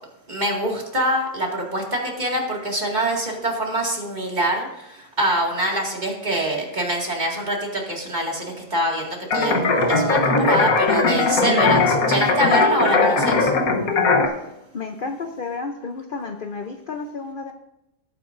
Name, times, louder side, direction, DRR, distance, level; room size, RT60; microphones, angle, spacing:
voice 1, 0.3-13.5, right 1 dB, 30° right, -1 dB, 2.2 m, -25 dB
sound 1, 9.3-14.3, left 3 dB, 65° left, 1.5 m, -19 dB
voice 2, 14.4-17.5, left 4 dB, 50° left, 5 dB, 0.7 m, -32 dB
18.0 x 9.1 x 2.6 m, 0.89 s
omnidirectional pair, 1.7 m